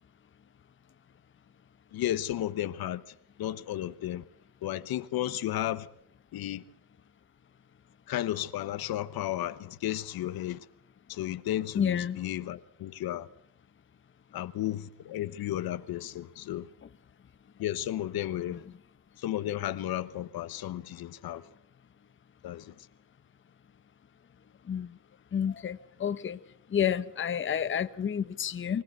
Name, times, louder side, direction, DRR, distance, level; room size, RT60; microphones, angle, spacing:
voice 1, 1.9-4.3 4.6-5.9 6.3-6.6 8.1-10.7 11.1-13.3 14.3-16.7 17.6-18.6 19.2-21.5 22.4-22.9, left 13 dB, 60° left, 1.1 m, -33 dB
voice 2, 11.7-12.2 24.7-24.9 25.3-26.4 26.7-28.8, left 8 dB, 30° left, 1.0 m, -29 dB
24.5 x 17.5 x 8.0 m
cardioid pair, 125°, 40 cm